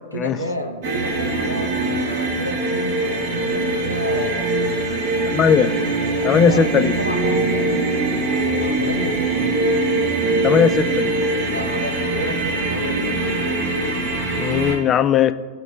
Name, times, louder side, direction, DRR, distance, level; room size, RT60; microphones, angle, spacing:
voice 1, 0.1-4.5 5.6-6.6 7.0-8.0 8.6-9.6 11.5-13.2, equal, 90° right, 3 dB, 0.7 m, -31 dB
sound 1, 0.8-14.8, right 2 dB, 50° right, 1.1 m, -22 dB
voice 2, 5.3-5.7 6.2-6.9 10.4-11.1 14.4-15.3, left 8 dB, 25° left, 11 dB, 0.4 m, -18 dB
12.5 x 4.8 x 2.2 m, 1.5 s
figure-of-eight pair, 90°, 0 cm